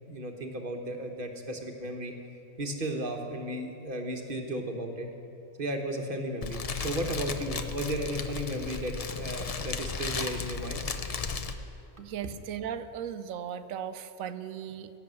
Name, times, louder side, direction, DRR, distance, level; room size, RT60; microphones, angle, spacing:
voice 1, 0.1-2.1 2.6-5.1 5.6-10.8 12.0-12.1, right 1 dB, 40° right, 3 dB, 1.2 m, -34 dB
Fire, 6.4-11.5, left 5 dB, 50° left, 0.4 m, -35 dB
voice 2, 12.0-14.9, right 8 dB, 75° right, 11 dB, 1.0 m, -37 dB
16.0 x 7.0 x 7.5 m, 2.7 s
omnidirectional pair, 1.5 m